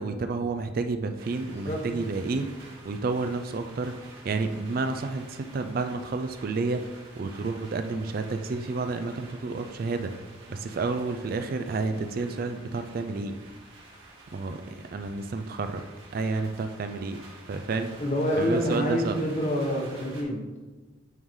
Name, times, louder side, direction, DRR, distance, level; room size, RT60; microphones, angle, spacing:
voice 1, 0.0-2.5 2.8-6.8 7.2-10.1 10.5-13.4 14.3-14.6 14.9-15.8 16.1-17.2 17.5-17.9 18.4-19.2, right 3 dB, 50° right, 8 dB, 0.3 m, -30 dB
sound 1, 1.2-20.2, right 2 dB, 85° right, 1.9 m, -50 dB
voice 2, 1.5-1.8 17.9-20.4, equal, 35° left, 1 dB, 1.0 m, -27 dB
9.0 x 3.8 x 3.1 m, 1.2 s
head